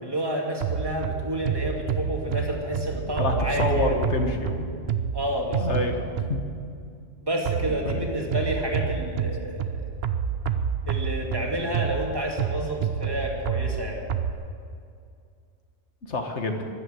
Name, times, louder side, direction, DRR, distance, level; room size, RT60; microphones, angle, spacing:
voice 1, 0.0-4.0 5.1-5.8 7.2-9.9 10.9-14.0, right 1 dB, 20° right, 0 dB, 2.3 m, -30 dB
sound 1, 0.6-6.7 7.5-14.3, right 7 dB, 55° right, 0.9 m, -29 dB
voice 2, 3.2-4.7 5.6-6.0 6.3-6.4 7.9-8.0 16.1-16.7, left 3 dB, 60° left, 5 dB, 1.7 m, -27 dB
15.0 x 11.0 x 7.7 m, 2.3 s
omnidirectional pair, 1.3 m